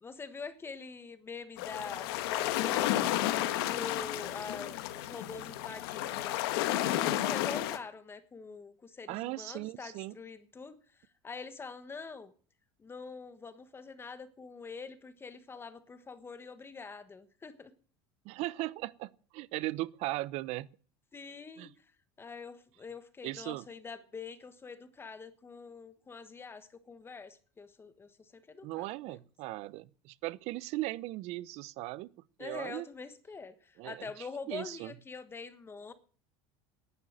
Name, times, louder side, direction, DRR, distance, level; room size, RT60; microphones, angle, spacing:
voice 1, 0.0-3.0 3.6-6.5 6.9-12.3 12.8-17.7 21.1-21.9 22.2-29.2 32.4-35.9, left 4 dB, 20° left, 1.3 m, -45 dB
sound 1, 1.6-7.8, left 14 dB, 80° left, 1.5 m, -32 dB
voice 2, 9.1-10.1 18.2-20.7 21.6-21.7 23.2-23.6 28.6-32.1 32.4-32.9 33.8-34.9, right 18 dB, 55° right, 0.7 m, -38 dB
11.0 x 9.4 x 8.7 m
supercardioid pair, 130°, 13 cm